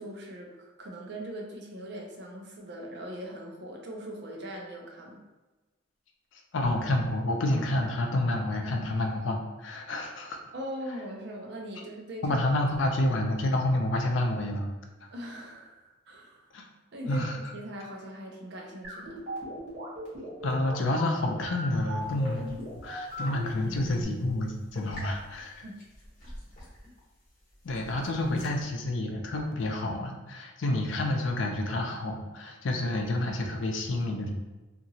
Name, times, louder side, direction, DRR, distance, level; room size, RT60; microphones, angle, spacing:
voice 1, 0.0-5.2 10.5-12.4 12.8-13.0 15.1-16.5 16.9-19.2 25.6-25.8 27.9-28.1, equal, 60° right, 0 dB, 0.6 m, -41 dB
voice 2, 6.5-10.4 12.2-14.7 15.0-15.1 16.5-16.7 17.1-17.4 20.4-22.4 22.8-25.6 27.6-34.3, left 1 dB, 75° left, 2 dB, 0.5 m, -29 dB
sound 1, 18.8-24.0, left 1 dB, 40° right, 1.0 m, -38 dB
sound 2, 22.0-28.6, equal, 45° left, 1.0 m, -48 dB
2.8 x 2.5 x 2.7 m, 1.2 s
head